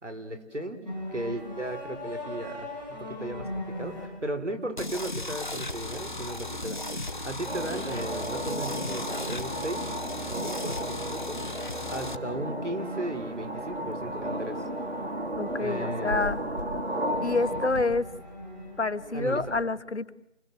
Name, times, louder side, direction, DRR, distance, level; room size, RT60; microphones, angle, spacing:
voice 1, 0.0-0.8 1.1-2.7 3.0-3.5 3.8-9.9 10.2-14.6 15.6-16.3 19.1-19.6, right 1 dB, 90° right, 8 dB, 4.6 m, -36 dB
sound 1, 0.8-4.1 5.5-19.6, equal, 40° right, 7.6 m, -41 dB
sound 2, 4.8-12.2, left 2 dB, 40° left, 1.3 m, -36 dB
sound 3, 7.5-17.7, right 1 dB, 65° right, 3.8 m, -34 dB
voice 2, 15.4-16.4 17.2-18.1 18.8-20.1, left 3 dB, 75° left, 11 dB, 1.5 m, -28 dB
29.0 x 20.5 x 7.7 m, 0.87 s
figure-of-eight pair, 175°, 35 cm